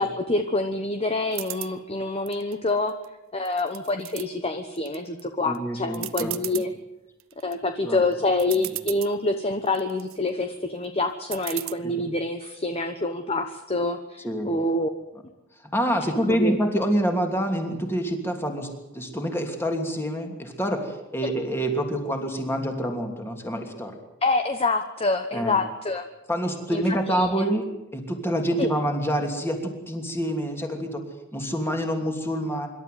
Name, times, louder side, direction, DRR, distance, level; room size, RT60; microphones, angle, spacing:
voice 1, 0.0-2.9 3.3-6.7 7.4-14.9 16.3-16.6 24.2-26.0 26.7-27.4 28.6-28.7, left 2 dB, 25° left, 7 dB, 1.1 m, -26 dB
sound 1, 1.3-1.7 2.3-3.0 3.4-4.2 4.8-5.2 5.5-5.6 5.9-6.7 7.2-7.5 8.1-8.2 8.4-9.1 9.7-10.2 11.3-11.7, right 17 dB, 65° right, 0.8 m, -35 dB
voice 2, 5.4-6.6 7.8-8.0 11.8-12.0 14.2-14.5 15.7-18.7 18.9-23.9 25.3-25.6 26.3-27.7 27.9-31.0 31.3-32.7, equal, 10° left, 4 dB, 3.0 m, -27 dB
26.0 x 12.5 x 9.4 m, 0.98 s
head